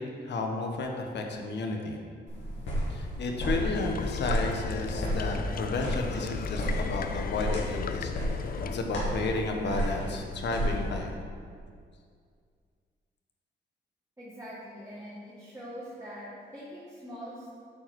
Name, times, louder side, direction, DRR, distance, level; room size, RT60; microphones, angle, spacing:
voice 1, 0.2-2.0 2.9-8.1 8.7-11.1, left 3 dB, 65° left, 2 dB, 1.2 m, -32 dB
sound 1, 2.3-10.9, equal, 85° left, 2.3 m, -33 dB
sound 2, 3.7-8.8, left 6 dB, 50° left, 0.5 m, -36 dB
voice 2, 14.2-17.5, equal, 15° right, -9 dB, 1.9 m, -43 dB
8.6 x 4.8 x 6.2 m, 2.2 s
cardioid pair, 100°, 19 cm